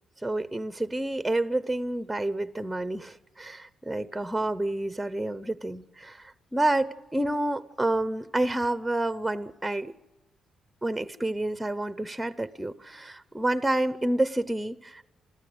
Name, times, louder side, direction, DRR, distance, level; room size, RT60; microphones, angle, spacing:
voice 1, 0.2-9.9 10.8-15.0, right 1 dB, 5° right, 0.8 m, -29 dB
28.5 x 13.5 x 8.1 m
cardioid pair, 90°, 0 cm